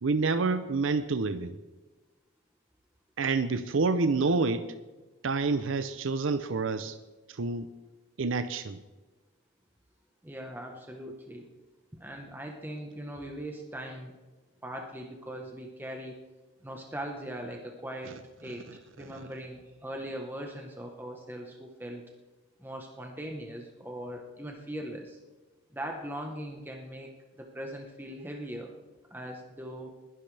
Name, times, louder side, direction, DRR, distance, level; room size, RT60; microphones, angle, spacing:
voice 1, 0.0-1.6 3.2-4.6 5.2-7.0 7.3-7.7 8.2-8.8 18.1-18.6 19.0-19.3, right 3 dB, 80° right, 11 dB, 0.6 m, -28 dB
voice 2, 10.2-11.5 11.9-14.1 14.6-16.2 16.6-18.7 18.9-22.1 22.6-25.2 25.7-28.7 29.1-30.0, right 1 dB, 10° right, 1 dB, 1.1 m, -40 dB
20.5 x 11.0 x 3.4 m, 1.2 s
head